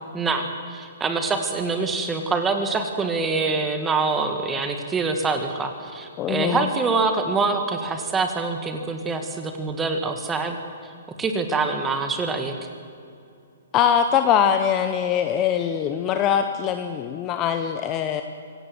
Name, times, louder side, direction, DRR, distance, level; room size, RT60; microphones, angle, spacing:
voice 1, 0.1-10.6 11.2-12.5, right 4 dB, 10° right, 6 dB, 1.9 m, -25 dB
voice 2, 6.2-6.7 13.7-18.2, left 8 dB, 20° left, 8 dB, 0.9 m, -22 dB
24.5 x 17.0 x 7.9 m, 2.5 s
hypercardioid pair, 165°, 0 cm